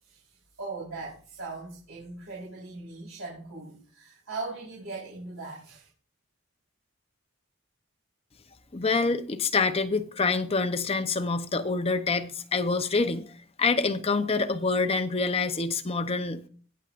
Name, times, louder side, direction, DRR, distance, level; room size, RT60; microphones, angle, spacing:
voice 1, 0.0-5.9, right 3 dB, 80° right, 4.1 m, -39 dB
voice 2, 8.7-13.3 13.6-16.5, left 4 dB, 30° left, 0.7 m, -26 dB
19.5 x 7.0 x 2.5 m
head